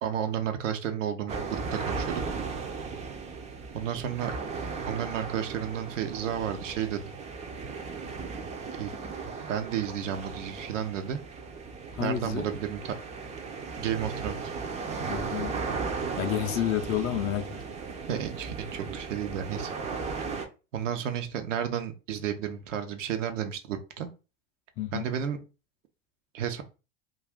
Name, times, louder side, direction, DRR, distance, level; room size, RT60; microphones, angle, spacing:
voice 1, 0.0-2.2 3.7-4.4 4.9-7.1 8.8-8.9 9.5-11.2 12.0-13.0 13.8-14.5 18.1-19.7 20.7-24.1 24.9-25.4 26.3-26.6, right 9 dB, 80° right, 0.7 m, -32 dB
sound 1, 1.3-20.5, right 5 dB, 20° right, 0.5 m, -36 dB
voice 2, 11.9-12.5 15.1-15.6 16.2-17.6 24.8-25.1, left 11 dB, 40° left, 0.5 m, -30 dB
2.5 x 2.4 x 3.4 m
hypercardioid pair, 90°, 37 cm